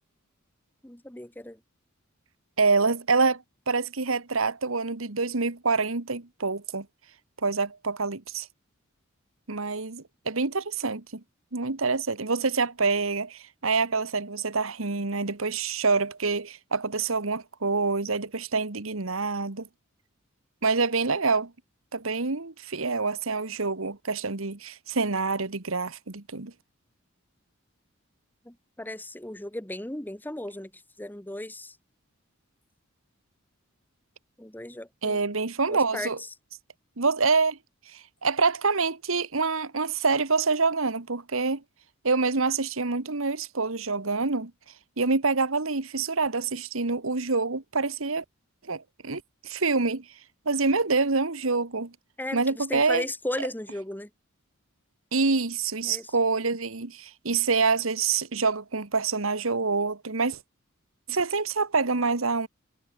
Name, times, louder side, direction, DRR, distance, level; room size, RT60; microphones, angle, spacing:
voice 1, 0.8-1.6 28.4-31.8 34.4-35.2 35.7-36.3 52.2-54.1 55.8-56.1, left 1 dB, 10° left, 1.6 m, -36 dB
voice 2, 2.6-6.9 7.4-8.5 9.5-11.2 11.5-19.7 20.6-21.5 21.9-26.5 35.0-36.2 37.0-37.6 37.9-41.6 42.0-44.5 45.0-48.2 48.6-50.1 50.5-51.9 52.3-53.0 55.1-60.4 61.1-62.5, right 4 dB, 70° right, 1.6 m, -26 dB
head